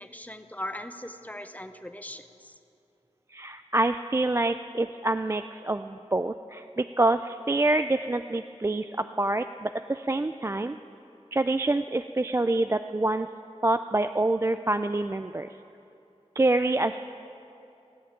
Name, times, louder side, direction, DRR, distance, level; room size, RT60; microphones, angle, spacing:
voice 1, 0.0-2.5, left 1 dB, 15° left, 9 dB, 0.7 m, -39 dB
voice 2, 3.3-10.8 11.3-13.3 13.6-15.5 16.4-17.0, right 2 dB, 25° right, 9 dB, 0.3 m, -26 dB
16.5 x 7.8 x 8.6 m, 2.8 s
wide cardioid pair, 60°, 12 cm